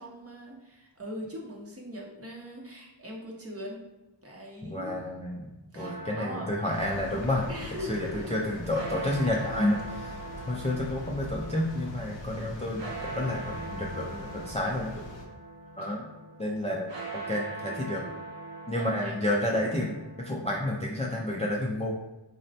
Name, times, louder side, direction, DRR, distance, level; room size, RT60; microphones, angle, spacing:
voice 1, 0.0-3.8 4.2-4.9 5.7-6.5 7.5-8.4 15.8-15.9 18.8-19.2, equal, 30° right, -1 dB, 0.7 m, -41 dB
voice 2, 4.6-7.5 7.9-10.2 10.5-14.9 15.8-16.1 16.4-18.0 18.7-21.9, left 1 dB, 15° left, -2 dB, 0.3 m, -30 dB
sound 1, 5.8-20.6, right 3 dB, 65° right, 0.7 m, -42 dB
sound 2, 6.7-15.3, left 2 dB, 70° left, 0.6 m, -42 dB
4.0 x 2.0 x 2.6 m, 1.0 s
wide cardioid pair, 65°, 46 cm